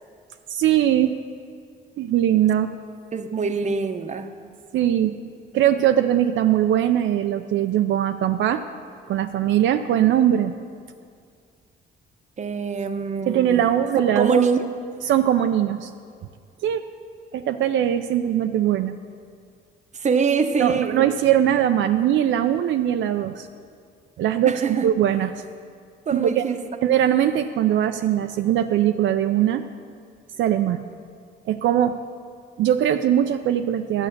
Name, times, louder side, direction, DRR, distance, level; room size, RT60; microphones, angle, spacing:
voice 1, 0.5-1.2 2.0-2.7 4.7-5.1 5.5-8.6 9.1-10.5 13.3-14.4 15.1-15.9 16.6-16.9 17.3-19.0 20.6-23.5 24.2-25.4 26.1-26.4 26.8-29.6 30.4-30.8 31.5-32.0 32.6-34.1, right 11 dB, 70° right, 0.4 m, -21 dB
voice 2, 3.1-4.3 12.4-13.7 14.2-14.7 20.0-21.0 24.4-24.9 26.1-26.6, right 5 dB, 35° right, 0.8 m, -24 dB
11.0 x 8.0 x 6.6 m
cardioid pair, 90°, 20 cm